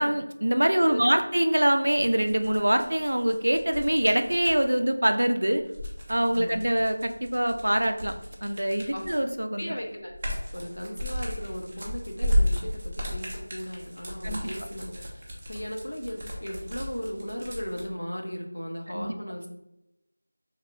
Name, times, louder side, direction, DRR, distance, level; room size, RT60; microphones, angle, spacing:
voice 1, 0.0-5.6 6.1-8.1 8.4-9.7 14.2-14.5 18.9-19.2, right 1 dB, 90° right, 7 dB, 0.3 m, -24 dB
sound 1, 1.8-4.6 5.6-9.3 9.8-17.8, equal, 15° right, 0.3 m, -33 dB
voice 2, 9.5-10.1 10.5-19.5, equal, 90° left, 1 dB, 0.7 m, -36 dB
2.9 x 2.9 x 2.5 m, 0.86 s
figure-of-eight pair, 180°, 0 cm